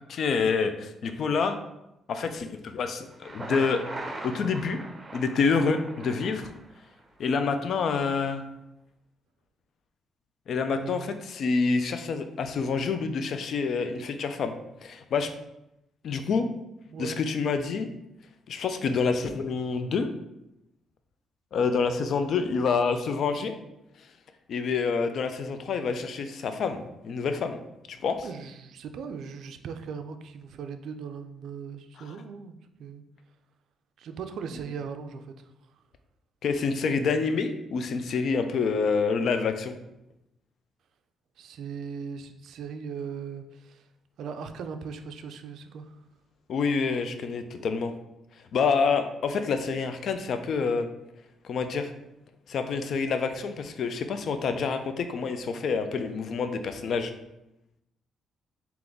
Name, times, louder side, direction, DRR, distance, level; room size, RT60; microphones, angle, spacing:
voice 1, 0.1-1.6 2.1-3.8 4.2-4.8 5.1-6.5 7.2-8.4 10.5-14.6 14.8-15.3 16.0-16.5 17.0-17.9 18.5-20.1 21.5-23.5 24.5-27.6 27.9-28.3 36.4-39.8 46.5-47.9 48.5-50.9 51.4-51.9 52.5-57.1, left 5 dB, 60° left, 8 dB, 0.4 m, -27 dB
Thunder, 3.1-7.0, right 2 dB, 20° right, 0.7 m, -40 dB
voice 2, 10.8-11.1 16.9-17.2 28.2-33.0 34.0-35.4 41.4-43.8 44.2-46.0, right 6 dB, 75° right, 8 dB, 0.3 m, -39 dB
3.8 x 2.9 x 3.5 m, 0.88 s
cardioid pair, 90°, 0 cm